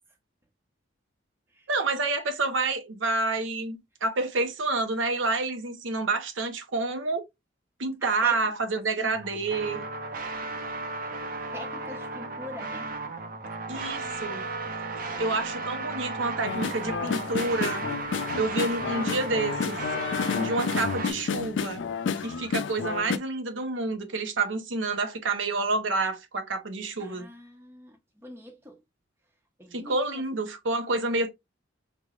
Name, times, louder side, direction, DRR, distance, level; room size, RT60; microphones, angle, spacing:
voice 1, 1.7-7.2 7.8-9.8 13.7-14.4 15.2-17.8 18.4-19.8 20.3-21.9 22.2-27.3 29.7-31.3, right 3 dB, 85° right, 0.8 m, -28 dB
sound 1, 9.1-21.1, right 3 dB, 45° right, 0.6 m, -35 dB
voice 2, 11.5-12.9 15.1-15.5 27.0-28.8 29.6-30.2, left 1 dB, 15° right, 0.8 m, -44 dB
sound 2, 16.4-23.2, left 6 dB, 75° left, 0.4 m, -30 dB
5.1 x 3.3 x 2.4 m
head